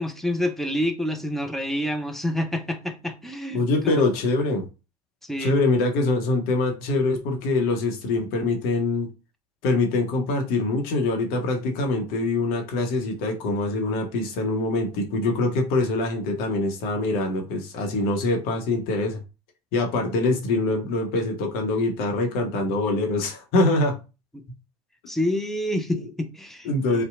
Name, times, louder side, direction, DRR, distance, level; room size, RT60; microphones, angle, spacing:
voice 1, 0.0-4.0 5.2-5.6 24.3-24.4 25.1-27.0, left 1 dB, ahead, 0.4 m, -28 dB
voice 2, 3.5-4.7 5.4-9.1 9.6-19.2 19.7-24.0 26.6-27.0, left 2 dB, 50° left, 0.8 m, -24 dB
2.7 x 2.1 x 2.5 m
figure-of-eight pair, 75°, 20 cm